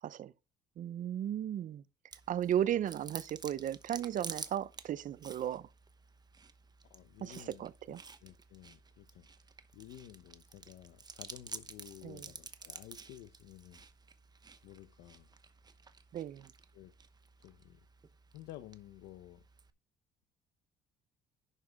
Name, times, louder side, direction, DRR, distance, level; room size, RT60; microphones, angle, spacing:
voice 1, 0.8-1.8 2.3-5.7 7.2-8.0 12.0-12.3 16.1-16.5, right 10 dB, 50° right, 0.6 m, -35 dB
Chewing mastication, 2.1-19.7, right 4 dB, 25° right, 0.9 m, -51 dB
voice 2, 6.9-9.5 9.7-13.8 14.6-15.3 16.7-16.9 17.4-17.8 18.3-19.4, left 13 dB, 90° left, 0.8 m, -53 dB
11.0 x 5.9 x 3.5 m
cardioid pair, 110°, 17 cm